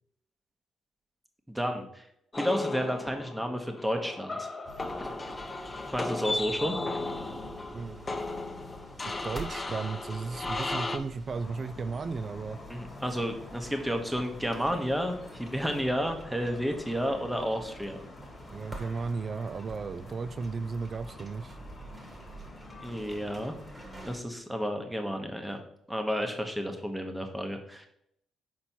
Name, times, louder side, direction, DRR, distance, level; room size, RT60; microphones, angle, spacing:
voice 1, 1.5-2.1 2.4-4.5 5.0-5.1 5.9-7.0 12.7-18.0 22.8-23.5 24.0-25.6 25.9-27.9, equal, 5° right, 4 dB, 1.1 m, -31 dB
sound 1, 2.3-11.0, left 2 dB, 25° left, 0.7 m, -35 dB
sound 2, 4.6-24.2, right 1 dB, 25° right, 1.4 m, -47 dB
voice 2, 7.7-8.2 9.0-12.6 18.5-21.6, right 4 dB, 45° right, 15 dB, 0.4 m, -35 dB
sound 3, 11.3-24.1, left 3 dB, 40° left, 1.3 m, -49 dB
5.8 x 4.3 x 4.4 m, 0.74 s
cardioid pair, 90°, 0 cm